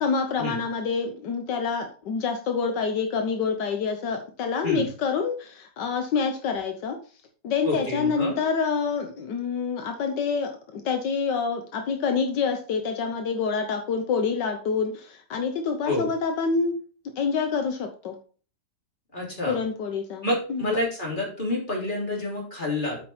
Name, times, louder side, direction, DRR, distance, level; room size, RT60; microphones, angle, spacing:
voice 1, 0.0-7.0 7.4-16.8 17.2-18.2 19.5-20.8, left 5 dB, 80° left, 5 dB, 1.6 m, -27 dB
voice 2, 7.6-8.3 15.8-16.1 19.1-19.6 20.2-23.0, left 1 dB, 25° left, -3 dB, 3.5 m, -28 dB
8.0 x 6.0 x 4.3 m, 0.40 s
omnidirectional pair, 1.9 m